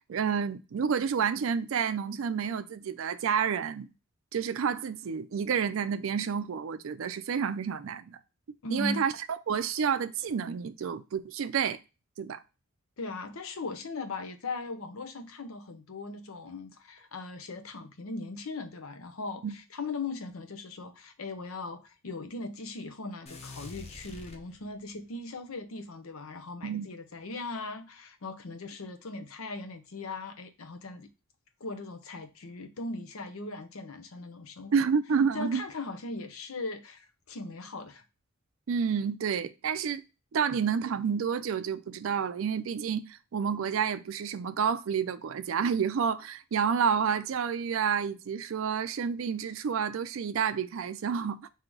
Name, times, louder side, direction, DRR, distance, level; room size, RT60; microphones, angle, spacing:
voice 1, 0.1-3.9 4.3-8.2 8.7-11.8 12.2-12.4 19.4-19.6 26.6-26.9 34.7-35.6 38.7-40.0 40.3-51.5, right 6 dB, 70° right, 0.4 m, -29 dB
voice 2, 8.6-9.0 13.0-31.1 31.6-34.9 35.3-38.0, left 3 dB, 85° left, 0.7 m, -39 dB
sound 1, 23.3-25.0, left 2 dB, 30° left, 0.5 m, -46 dB
3.8 x 2.8 x 4.5 m
head